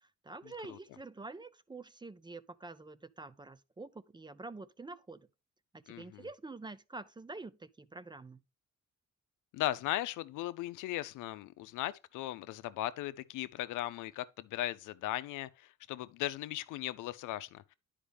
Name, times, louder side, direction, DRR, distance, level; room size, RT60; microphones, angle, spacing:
voice 1, 0.0-5.3 5.7-8.4, right 3 dB, 15° right, 0.4 m, -47 dB
voice 2, 5.9-6.3 9.5-17.7, left 15 dB, 90° left, 0.6 m, -38 dB
10.0 x 4.9 x 3.4 m
cardioid pair, 90°, 30 cm